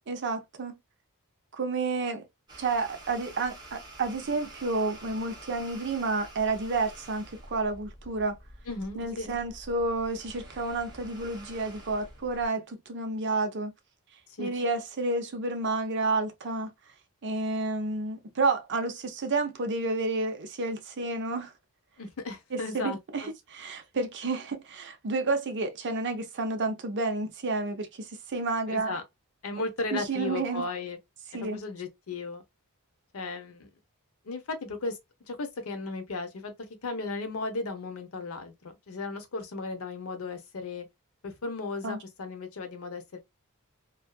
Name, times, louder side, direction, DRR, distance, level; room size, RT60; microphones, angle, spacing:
voice 1, 0.1-0.7 1.5-2.2 2.6-8.4 9.0-13.7 14.4-16.7 17.2-21.5 22.5-29.0 29.9-30.7 31.3-31.6 41.8-42.0, right 3 dB, 50° right, 0.6 m, -30 dB
sound 1, 2.5-12.5, right 1 dB, 20° right, 0.9 m, -48 dB
voice 2, 8.7-9.3 14.4-14.5 22.0-23.3 28.7-29.0 29.4-31.0 31.4-32.4 33.1-33.7 34.2-35.0 35.3-36.5 36.8-40.9 41.2-43.2, left 3 dB, 70° left, 0.7 m, -35 dB
2.6 x 2.3 x 2.2 m
head